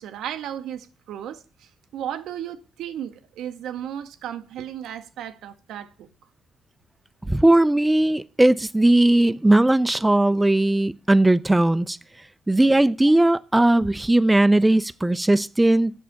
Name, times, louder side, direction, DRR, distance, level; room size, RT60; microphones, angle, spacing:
voice 1, 0.0-1.4 1.9-6.1 12.7-13.0, right 10 dB, 85° right, 0.7 m, -34 dB
voice 2, 7.3-12.0 12.5-15.9, right 1 dB, 10° right, 0.3 m, -18 dB
7.9 x 6.2 x 5.7 m
cardioid pair, 90°, 0 cm